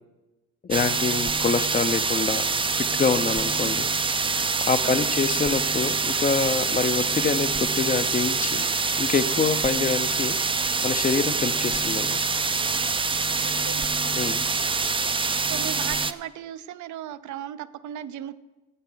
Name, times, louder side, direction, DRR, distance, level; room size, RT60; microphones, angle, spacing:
voice 1, 0.6-3.9 4.6-8.7 9.0-10.4 10.8-12.2 14.2-14.4, left 5 dB, 30° left, 11 dB, 0.6 m, -26 dB
sound 1, 0.7-16.1, right 4 dB, 20° right, 0.5 m, -25 dB
voice 2, 15.5-18.4, right 11 dB, 75° right, 14 dB, 0.7 m, -36 dB
16.5 x 8.1 x 3.9 m, 1.1 s
cardioid pair, 90°, 30 cm